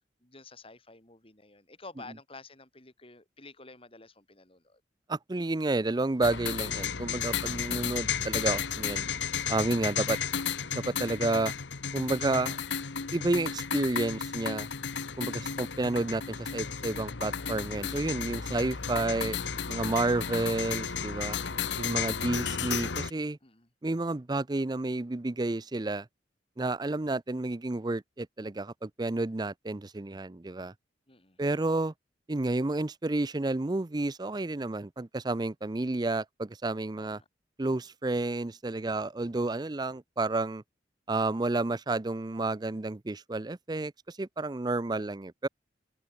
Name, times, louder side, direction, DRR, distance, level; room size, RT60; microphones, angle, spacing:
voice 1, 0.2-4.8 18.5-18.7 21.2-21.7 23.4-23.7 31.1-31.7 37.0-37.3, left 3 dB, 30° left, 6.8 m, -51 dB
voice 2, 5.1-9.0 9.5-10.2 10.7-11.5 11.9-12.6 13.1-14.7 15.2-19.4 19.7-21.4 21.8-23.4 23.8-26.1 26.6-30.7 31.4-31.9 32.3-37.2 37.6-40.6 41.1-45.5, right 2 dB, 25° right, 0.5 m, -30 dB
sound 1, 6.2-23.1, left 7 dB, 90° left, 1.2 m, -33 dB
sound 2, 6.7-11.3, equal, 60° left, 7.2 m, -54 dB
head